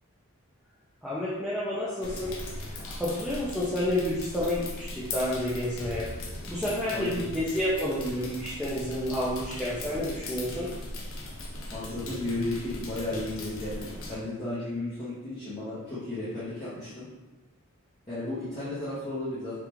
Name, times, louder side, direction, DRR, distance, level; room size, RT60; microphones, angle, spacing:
voice 1, 1.0-2.4 2.7-10.7, left 1 dB, ahead, -9 dB, 0.4 m, -30 dB
sound 1, 2.0-14.1, left 1 dB, 70° left, 0.6 m, -39 dB
voice 2, 6.9-7.3 11.7-17.1 18.1-19.6, left 2 dB, 25° left, -14 dB, 0.8 m, -34 dB
3.4 x 2.4 x 3.0 m, 1.1 s
head